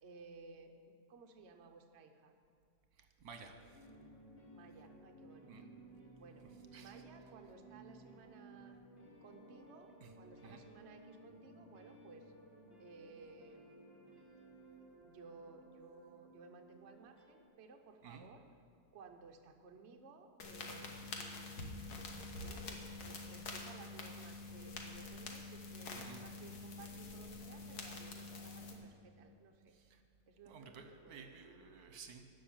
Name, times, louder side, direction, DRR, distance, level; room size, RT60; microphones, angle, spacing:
voice 1, 0.0-2.3 4.5-5.7 6.2-6.5 6.8-8.8 9.2-12.3 12.8-14.0 15.0-18.4 18.9-21.7 22.4-29.8 30.3-31.6, right 4 dB, 50° right, 4 dB, 1.0 m, -58 dB
voice 2, 3.2-3.5 5.5-5.6 6.7-6.9 10.0-10.1 10.4-10.6 18.0-18.3 25.9-26.2 29.7-30.0 30.5-32.2, right 6 dB, 75° right, 6 dB, 1.5 m, -53 dB
sound 1, 3.7-17.5, right 1 dB, 40° left, 1.9 m, -58 dB
sound 2, 20.4-28.7, left 3 dB, 85° left, 1.8 m, -47 dB
13.5 x 5.7 x 8.7 m, 2.4 s
omnidirectional pair, 1.6 m